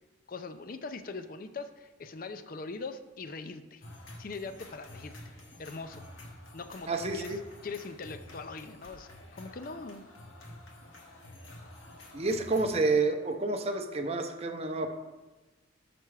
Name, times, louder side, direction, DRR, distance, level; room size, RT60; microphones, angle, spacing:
voice 1, 0.3-3.8 4.2-5.2 5.6-6.0 6.5-10.0, left 4 dB, 45° left, 9 dB, 0.4 m, -41 dB
sound 1, 3.8-12.7, left 1 dB, 75° left, 1.3 m, -49 dB
voice 2, 6.9-7.4 12.1-14.9, right 3 dB, 30° right, 5 dB, 0.6 m, -29 dB
6.6 x 6.0 x 4.7 m, 1.2 s
head